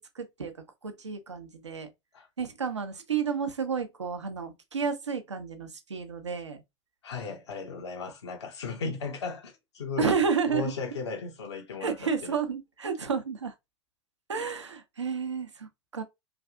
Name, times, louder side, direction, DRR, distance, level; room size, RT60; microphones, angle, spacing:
voice 1, 0.1-0.5 0.8-1.9 2.4-6.6 10.0-10.7 11.8-13.5 14.3-16.0, right 6 dB, 80° right, 0.6 m, -31 dB
voice 2, 7.0-10.2 10.5-12.3, left 4 dB, 70° left, 0.7 m, -36 dB
3.3 x 2.3 x 2.4 m
figure-of-eight pair, 85°, 15 cm